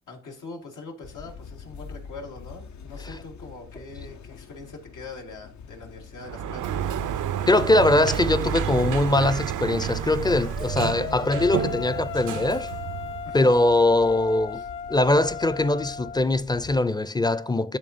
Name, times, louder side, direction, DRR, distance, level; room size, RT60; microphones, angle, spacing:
voice 1, 0.1-6.9 13.2-13.5 14.5-14.7, left 3 dB, 90° left, 1.6 m, -42 dB
sound 1, 1.0-16.9, left 5 dB, 65° left, 0.6 m, -46 dB
Sliding door, 6.2-13.4, right 9 dB, 80° right, 0.4 m, -30 dB
voice 2, 7.5-12.7 13.3-14.6 14.9-17.8, left 2 dB, 15° left, 0.4 m, -22 dB
sound 2, 10.4-16.2, left 7 dB, 45° left, 0.9 m, -36 dB
11.0 x 3.6 x 2.6 m
cardioid pair, 70°, 30 cm